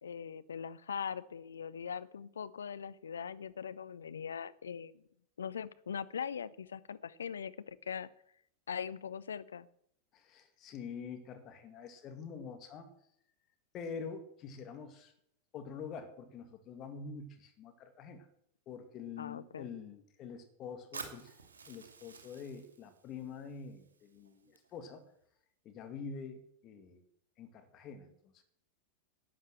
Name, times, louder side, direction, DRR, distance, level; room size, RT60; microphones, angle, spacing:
voice 1, 0.0-5.0 5.4-8.1 8.7-9.7 19.2-19.7, left 7 dB, 70° left, 16 dB, 0.7 m, -41 dB
voice 2, 10.1-12.9 13.7-15.1 15.5-18.3 18.7-25.0 25.6-27.0 27.4-28.4, left 6 dB, 35° left, 7 dB, 2.1 m, -46 dB
Fire, 20.9-24.9, right 5 dB, 70° right, 2.4 m, -51 dB
12.0 x 9.0 x 7.7 m, 0.70 s
figure-of-eight pair, 90°, 0 cm